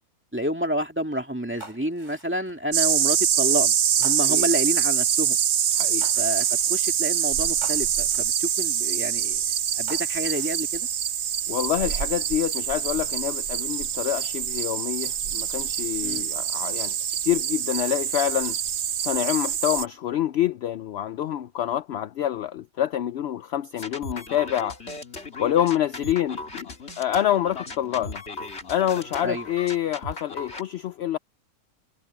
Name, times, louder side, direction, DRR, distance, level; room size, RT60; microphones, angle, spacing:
voice 1, 0.3-5.4 6.2-9.4 9.8-10.9 16.0-16.2 29.2-29.5, equal, 5° right, 2.3 m, -29 dB
sound 1, 1.6-2.7 4.0-4.7 6.0-6.8 7.6-8.4 9.9-10.6 11.3-11.8, right 1 dB, 50° right, 5.2 m, -46 dB
sound 2, 2.7-19.8, right 9 dB, 75° right, 0.4 m, -25 dB
voice 2, 5.7-6.1 11.5-16.9 17.2-18.6 19.0-24.8 25.4-26.7 27.0-28.2 28.7-31.2, left 11 dB, 70° left, 0.6 m, -27 dB
sound 3, 23.8-30.6, left 3 dB, 45° left, 3.2 m, -37 dB
omnidirectional pair, 1.6 m